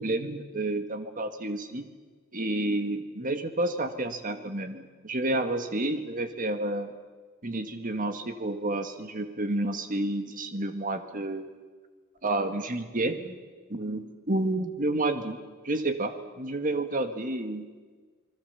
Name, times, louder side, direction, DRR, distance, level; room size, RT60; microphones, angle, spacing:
voice 1, 0.0-1.9 2.3-6.9 7.4-11.6 12.2-13.4 13.7-15.4 15.6-17.7, right 2 dB, 40° right, 8 dB, 1.8 m, -30 dB
28.5 x 21.0 x 7.0 m, 1.4 s
head